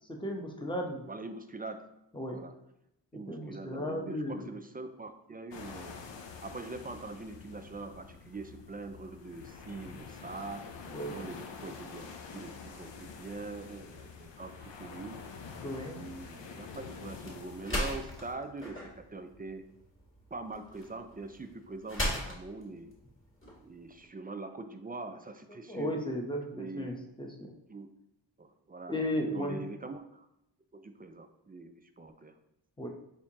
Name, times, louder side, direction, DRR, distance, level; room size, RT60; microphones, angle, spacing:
voice 1, 0.2-1.0 2.1-2.4 3.3-4.5 10.9-11.2 15.6-16.0 25.7-27.5 28.9-29.6 32.8-32.9, equal, 10° left, 1 dB, 0.9 m, -35 dB
voice 2, 1.0-1.8 2.3-2.5 3.1-6.0 6.4-15.2 15.8-19.7 20.3-22.9 23.6-26.0 26.5-27.0 27.7-27.9 28.4-28.9 29.3-30.3 30.7-32.4, right 3 dB, 25° right, 8 dB, 0.3 m, -43 dB
sound 1, 5.5-18.4, left 5 dB, 70° left, 0.6 m, -47 dB
sound 2, 16.4-24.1, left 1 dB, 25° left, 1.6 m, -39 dB
4.4 x 3.6 x 2.8 m, 0.83 s
cardioid pair, 55°, 45 cm